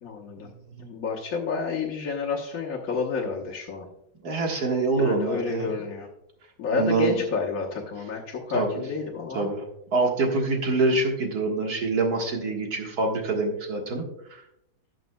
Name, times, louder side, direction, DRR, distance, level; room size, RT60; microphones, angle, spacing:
voice 1, 0.0-0.5 0.8-3.9 5.0-6.1 6.6-9.5, left 5 dB, 55° left, -4 dB, 1.5 m, -30 dB
voice 2, 4.2-5.7 6.7-7.2 8.5-8.8 9.3-9.6 9.9-14.4, right 3 dB, 60° right, 1 dB, 1.9 m, -25 dB
17.5 x 6.2 x 2.2 m, 0.81 s
omnidirectional pair, 1.9 m